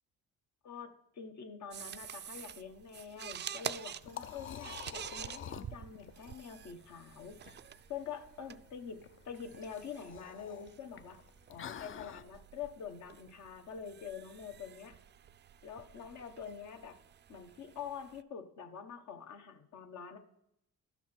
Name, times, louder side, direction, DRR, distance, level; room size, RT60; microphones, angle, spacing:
voice 1, 0.6-7.4 7.9-11.2 11.5-15.0 15.6-17.0 17.3-20.2, left 7 dB, 65° left, 6 dB, 1.2 m, -46 dB
sound 1, 1.7-18.2, right 9 dB, 35° right, 0.4 m, -48 dB
Liquid, 3.5-12.2, left 9 dB, 45° left, 0.5 m, -49 dB
12.0 x 5.9 x 4.4 m, 0.79 s
cardioid pair, 90°, 30 cm